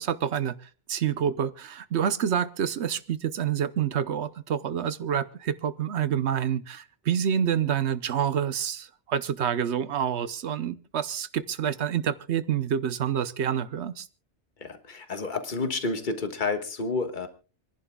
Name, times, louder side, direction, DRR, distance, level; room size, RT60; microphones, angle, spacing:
voice 1, 0.0-14.1, right 8 dB, 70° right, 14 dB, 1.1 m, -28 dB
voice 2, 14.6-17.3, left 3 dB, 45° left, 7 dB, 1.6 m, -30 dB
28.0 x 11.0 x 2.3 m, 0.34 s
omnidirectional pair, 1.2 m